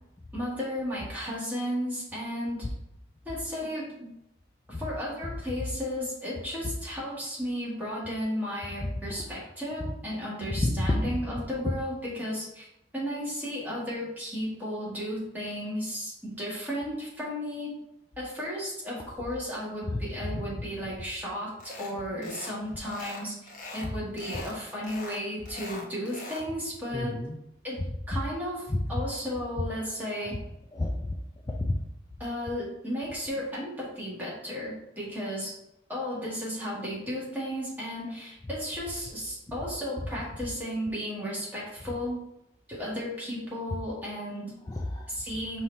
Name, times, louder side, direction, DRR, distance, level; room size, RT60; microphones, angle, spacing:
voice 1, 0.3-2.7 3.2-4.1 4.7-12.7 12.9-17.8 18.2-27.2 27.6-30.4 32.2-35.5 35.9-42.2 42.7-44.5 45.1-45.6, equal, 10° right, -7 dB, 1.5 m, -34 dB
voice 2, 10.5-11.1 19.9-20.0 20.3-20.4 26.9-27.4 28.7-28.8 30.7-31.1 31.5-31.8 44.7-45.1, left 1 dB, 20° left, -2 dB, 0.4 m, -29 dB
sound 1, 21.6-21.9 22.2-22.6 22.8-23.9 24.2-24.6 24.8-26.5, left 2 dB, 45° left, 0.8 m, -42 dB
5.4 x 2.9 x 3.1 m, 0.86 s
head